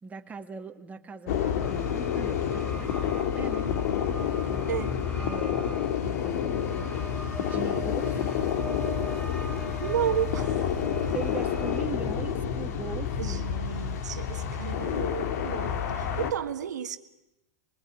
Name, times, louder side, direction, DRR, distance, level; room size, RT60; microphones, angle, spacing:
voice 1, 0.0-3.7 4.5-4.9 5.2-5.8 6.2-7.1 7.4-8.4 11.1-13.5, right 5 dB, 15° right, 2.1 m, -40 dB
sound 1, 1.3-16.3, left 8 dB, 60° left, 2.3 m, -29 dB
sound 2, 1.6-11.8, right 3 dB, 10° left, 2.6 m, -42 dB
voice 2, 9.8-10.7 13.2-17.0, right 9 dB, 75° right, 1.6 m, -32 dB
25.0 x 21.5 x 9.5 m
hypercardioid pair, 105°, 9 cm